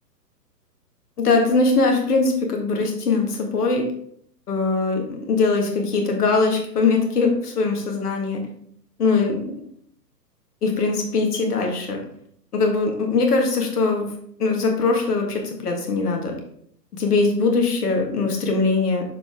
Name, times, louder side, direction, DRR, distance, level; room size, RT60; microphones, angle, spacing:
voice 1, 1.2-3.8 4.5-8.4 9.0-9.6 10.6-12.0 12.5-14.1 14.4-16.3 16.9-19.0, left 3 dB, 65° left, 2 dB, 1.7 m, -21 dB
6.7 x 4.3 x 3.5 m, 0.65 s
figure-of-eight pair, 130°, 50 cm